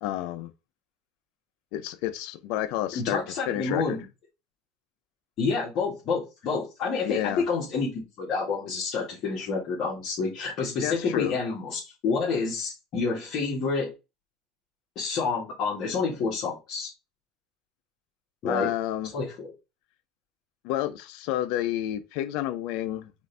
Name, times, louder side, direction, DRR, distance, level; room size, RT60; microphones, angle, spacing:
voice 1, 0.0-0.5 1.7-3.2 3.5-4.0 7.0-7.4 10.8-11.4 18.5-19.1 20.6-23.1, left 13 dB, 65° left, 0.6 m, -30 dB
voice 2, 2.9-4.0 5.4-13.9 14.9-16.9 18.4-18.7 19.1-19.5, left 4 dB, 45° left, 1.7 m, -29 dB
5.1 x 2.6 x 3.3 m
cardioid pair, 150°, 0 cm